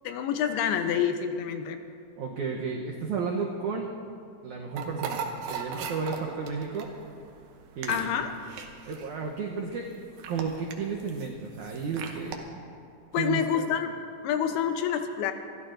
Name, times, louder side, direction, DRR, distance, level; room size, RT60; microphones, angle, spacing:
voice 1, 0.0-1.8 7.9-8.3 13.1-13.9 14.2-15.3, left 8 dB, 80° left, 7 dB, 2.5 m, -27 dB
voice 2, 2.2-3.9 4.4-6.9 7.8-8.2 8.9-9.9 10.3-12.6 13.2-13.6, right 5 dB, 90° right, 0 dB, 1.7 m, -33 dB
sound 1, 4.8-12.4, right 6 dB, 70° right, 2.6 m, -38 dB
28.5 x 13.5 x 2.6 m, 2.4 s
omnidirectional pair, 4.7 m